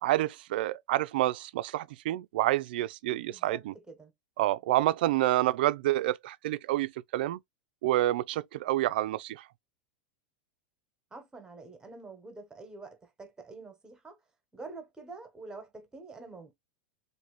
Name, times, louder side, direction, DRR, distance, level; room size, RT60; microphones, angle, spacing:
voice 1, 0.0-3.7 4.4-7.4 7.8-9.5, right 15 dB, 70° right, 0.3 m, -28 dB
voice 2, 3.2-3.6 3.9-4.1 11.1-14.2 14.5-16.5, right 3 dB, 15° right, 1.1 m, -46 dB
3.0 x 2.6 x 3.1 m
hypercardioid pair, 120°, 5 cm